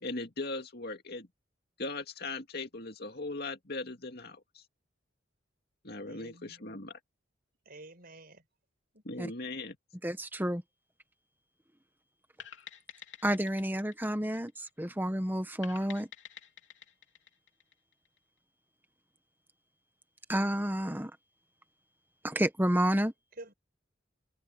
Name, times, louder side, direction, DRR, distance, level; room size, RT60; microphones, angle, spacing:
voice 1, 0.0-1.3 1.8-4.6 5.8-7.0 9.0-9.8, left 2 dB, 55° left, 2.3 m, -39 dB
voice 2, 6.1-6.8 7.7-8.4 8.9-9.0 23.4-23.5, right 2 dB, 50° right, 5.4 m, -50 dB
voice 3, 10.0-10.6 13.2-16.1 20.3-21.1 22.2-23.1, right 1 dB, 10° right, 1.4 m, -30 dB
sound 1, 12.4-14.9 15.6-18.2, left 8 dB, 70° left, 3.2 m, -50 dB
head